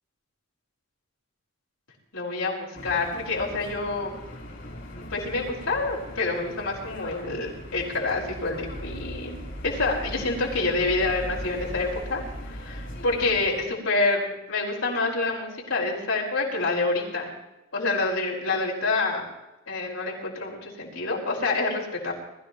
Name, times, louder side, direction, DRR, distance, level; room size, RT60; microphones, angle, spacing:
voice 1, 2.1-4.1 5.0-9.4 9.6-17.3 17.7-19.2 19.7-22.1, left 3 dB, 80° left, -4 dB, 5.4 m, -27 dB
sound 1, 2.7-13.6, equal, 60° left, 4.4 m, -39 dB
22.0 x 14.5 x 3.1 m, 1.0 s
head